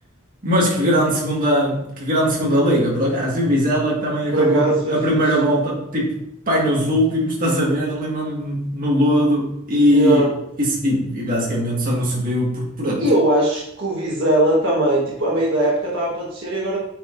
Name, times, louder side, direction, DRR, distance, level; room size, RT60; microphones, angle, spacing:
voice 1, 0.4-6.2 6.5-10.3 10.6-13.0, equal, 40° right, -4 dB, 1.8 m, -20 dB
voice 2, 4.3-5.2 9.9-10.3 13.0-16.8, right 1 dB, 60° right, -4 dB, 1.4 m, -20 dB
8.8 x 4.7 x 2.6 m, 0.78 s
head